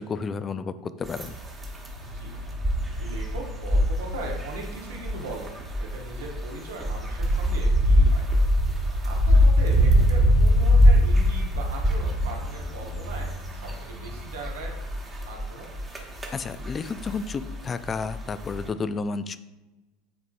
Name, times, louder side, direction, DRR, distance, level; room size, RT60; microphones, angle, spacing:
voice 1, 0.0-1.3 16.3-19.4, left 4 dB, 25° left, 13 dB, 0.3 m, -31 dB
sound 1, 1.0-18.7, equal, 20° right, 1.2 m, -23 dB
voice 2, 2.0-2.3 3.0-8.3 9.0-14.7 15.3-15.7, right 2 dB, 70° right, 0 dB, 1.2 m, -39 dB
9.3 x 3.9 x 2.5 m, 1.1 s
figure-of-eight pair, 75°, 0 cm